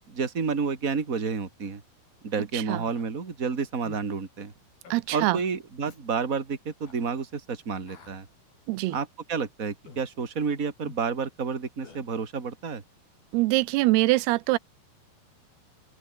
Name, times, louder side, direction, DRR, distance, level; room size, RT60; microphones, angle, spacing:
voice 1, 0.1-1.8 2.2-4.5 5.1-8.3 8.9-12.8, right 5 dB, 25° right, 2.7 m, -30 dB
Human voice, 2.9-3.1 3.8-4.1 4.8-5.0 5.8-6.0 6.8-7.0 7.9-8.2 8.9-9.1 9.9-10.1 10.9-11.0 11.8-12.0, left 4 dB, 65° left, 8.5 m, -49 dB
voice 2, 4.9-5.4 8.7-9.0 13.3-14.6, right 20 dB, 90° right, 2.7 m, -24 dB
open air
omnidirectional pair, 4.6 m